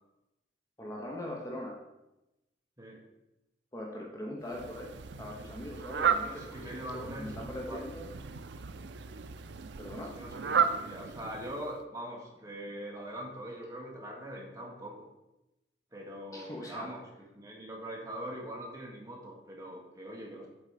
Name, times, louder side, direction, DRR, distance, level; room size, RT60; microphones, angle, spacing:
voice 1, 0.8-1.8 3.7-4.9 5.2-8.1 9.8-10.1 16.3-16.9, left 1 dB, 20° left, -2 dB, 0.9 m, -41 dB
Fowl, 4.5-11.8, right 6 dB, 75° right, 0.4 m, -34 dB
voice 2, 6.2-7.8 10.2-15.0 15.9-17.0 17.3-20.5, equal, 20° right, -2 dB, 1.4 m, -42 dB
7.5 x 4.0 x 5.0 m, 0.95 s
head